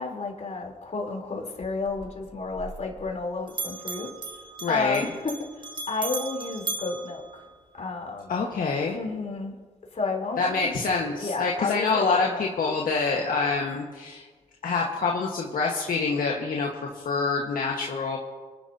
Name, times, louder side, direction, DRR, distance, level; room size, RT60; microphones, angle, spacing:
voice 1, 0.0-4.1 4.7-7.4 7.8-8.5 8.9-9.5 9.9-10.7 11.2-12.4, left 3 dB, 55° left, 0 dB, 3.7 m, -32 dB
Bell, 1.8-3.2 3.5-8.0, right 3 dB, 35° right, 1.8 m, -37 dB
voice 2, 4.6-5.0 8.3-9.0 10.4-14.2 14.6-18.2, left 4 dB, 75° left, -2 dB, 1.5 m, -26 dB
25.5 x 11.5 x 2.9 m, 1.4 s
cardioid pair, 60°, 15 cm